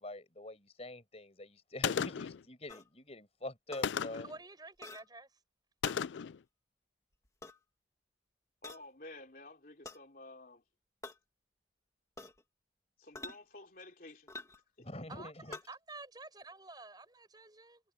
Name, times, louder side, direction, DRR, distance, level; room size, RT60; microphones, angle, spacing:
voice 1, 0.0-4.3 14.8-15.6, left 1 dB, 35° left, 5.5 m, -45 dB
Gunshot gunfire, 1.8-2.4 3.8-4.4 5.8-6.4, left 7 dB, 90° left, 0.4 m, -34 dB
sound 1, 2.7-2.9 3.7-3.9 4.8-5.1 5.9-6.0 7.2-7.6 8.6-8.8 9.8-10.0 11.0-11.2 12.2-12.4 13.1-13.4 14.3-14.6 15.5-15.7, left 3 dB, 20° left, 2.1 m, -47 dB
voice 2, 4.1-5.4 15.1-17.8, right 3 dB, 25° right, 7.5 m, -50 dB
voice 3, 8.6-10.6 13.0-14.4 14.8-15.1, left 2 dB, 50° left, 3.4 m, -52 dB
head